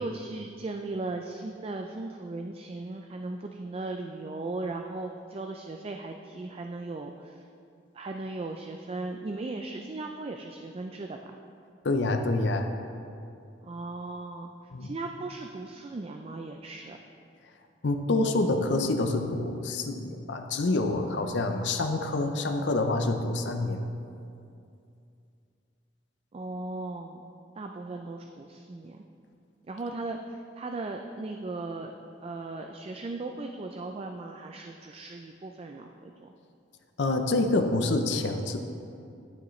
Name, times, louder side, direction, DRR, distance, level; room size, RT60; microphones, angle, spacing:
voice 1, 0.0-7.4 7.9-11.3 13.6-14.5 14.8-17.0 26.3-27.3 27.6-29.0 29.7-31.9 32.2-36.3, right 2 dB, 30° right, 4 dB, 0.3 m, -37 dB
voice 2, 11.8-12.7 14.7-14.9 17.8-23.9 37.0-38.6, left 2 dB, 75° left, 5 dB, 0.6 m, -27 dB
9.6 x 8.8 x 3.2 m, 2.5 s
head